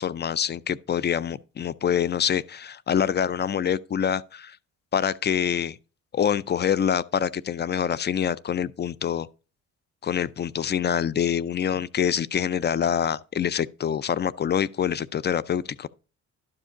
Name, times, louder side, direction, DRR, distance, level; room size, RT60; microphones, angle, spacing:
voice 1, 0.0-4.6 4.9-5.8 6.1-9.3 10.0-15.9, left 8 dB, 35° left, 0.4 m, -25 dB
11.5 x 5.1 x 3.7 m
cardioid pair, 90°, 30 cm